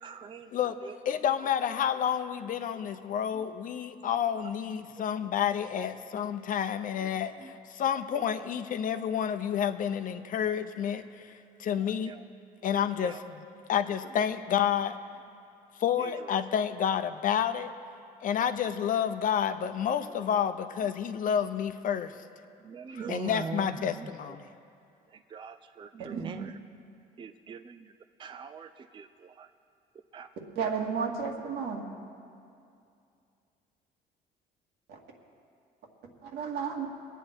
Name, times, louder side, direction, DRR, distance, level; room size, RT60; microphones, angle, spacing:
voice 1, 0.0-0.5 0.8-0.9 7.4-7.5 11.8-12.2 12.7-13.2 16.0-16.1 18.4-18.6 22.6-23.9 25.3-26.5 27.2-27.8 28.2-29.5 30.1-30.3, right 6 dB, 30° right, 9 dB, 0.4 m, -42 dB
voice 2, 1.0-12.1 12.6-15.0 15.8-17.7 18.2-22.1 22.9-24.4, left 8 dB, 50° left, 10 dB, 0.7 m, -30 dB
voice 3, 30.6-31.8 34.9-35.0 36.2-36.9, right 6 dB, 80° right, 0 dB, 2.1 m, -32 dB
22.0 x 9.0 x 4.6 m, 2.5 s
cardioid pair, 110°, 17 cm